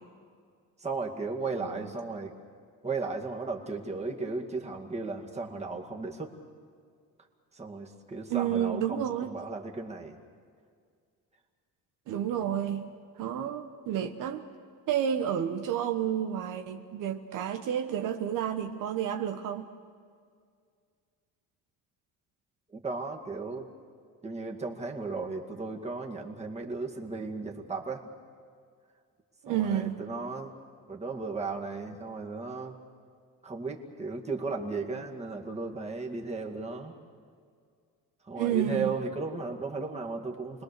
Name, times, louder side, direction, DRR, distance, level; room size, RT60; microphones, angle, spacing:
voice 1, 0.8-2.3 2.8-6.3 7.5-10.2 12.3-12.5 22.7-23.7 24.2-28.0 29.5-30.5 30.9-32.8 33.4-36.9 38.3-40.6, right 3 dB, 20° right, 1 dB, 2.2 m, -35 dB
voice 2, 8.3-9.3 12.1-12.9 13.2-14.5 14.9-19.7 29.4-30.0 38.4-38.9, right 9 dB, 70° right, 6 dB, 1.2 m, -30 dB
29.5 x 21.0 x 6.8 m, 2.1 s
cardioid pair, 130°, 34 cm